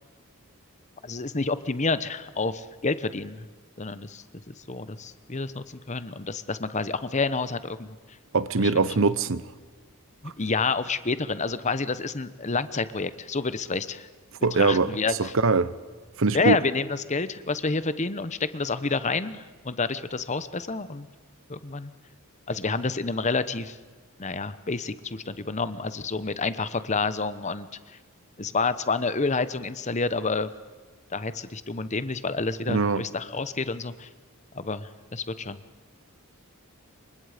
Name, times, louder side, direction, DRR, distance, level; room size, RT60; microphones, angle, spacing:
voice 1, 1.0-3.5 3.8-8.0 8.6-8.8 10.2-14.1 14.6-15.3 16.3-21.1 21.5-21.9 22.5-23.8 24.2-27.7 28.4-30.5 31.1-34.1 34.5-35.6, left 4 dB, 35° left, 1.0 m, -29 dB
voice 2, 8.3-9.4 14.4-14.9 15.2-15.7 16.2-16.6 32.7-33.0, right 4 dB, 65° right, 0.8 m, -22 dB
28.5 x 24.0 x 5.1 m
head